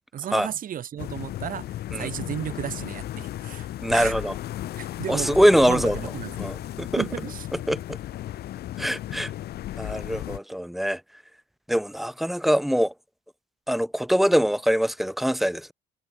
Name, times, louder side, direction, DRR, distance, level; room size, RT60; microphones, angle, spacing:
voice 1, 0.1-4.1 4.8-6.5 7.0-7.5, right 10 dB, 55° right, 4.4 m, -34 dB
sound 1, 1.0-10.4, left 13 dB, 70° left, 6.3 m, -35 dB
voice 2, 3.8-4.3 5.1-6.0 6.4-7.0 7.7-8.0 8.8-9.3 9.8-11.0 11.7-12.9 13.7-15.7, equal, ahead, 1.1 m, -23 dB
cardioid pair, 110°, 17 cm